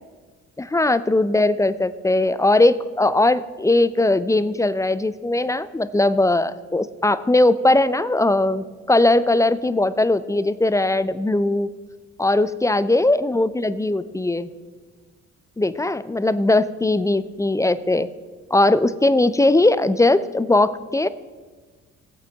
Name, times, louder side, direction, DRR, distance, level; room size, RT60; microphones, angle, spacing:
voice 1, 0.6-11.7 12.2-14.5 15.6-18.1 18.5-21.1, left 2 dB, 10° left, 16 dB, 0.4 m, -19 dB
16.0 x 8.4 x 3.5 m, 1.4 s
hypercardioid pair, 45°, 36 cm